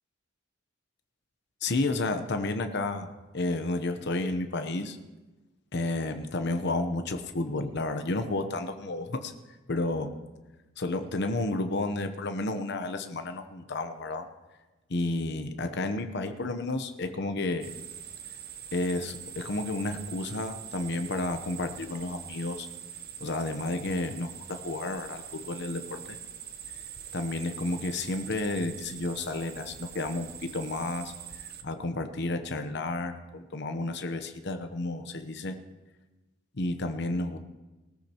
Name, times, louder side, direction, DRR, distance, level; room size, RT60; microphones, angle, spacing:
voice 1, 1.6-5.0 5.7-9.3 9.7-10.1 10.8-14.3 14.9-17.7 18.7-22.7 23.2-26.2 27.1-35.6 36.6-37.4, left 2 dB, 55° left, 7 dB, 0.9 m, -31 dB
sound 1, 17.6-31.6, right 9 dB, 50° right, 0.8 m, -44 dB
20.0 x 13.5 x 3.0 m, 1.2 s
head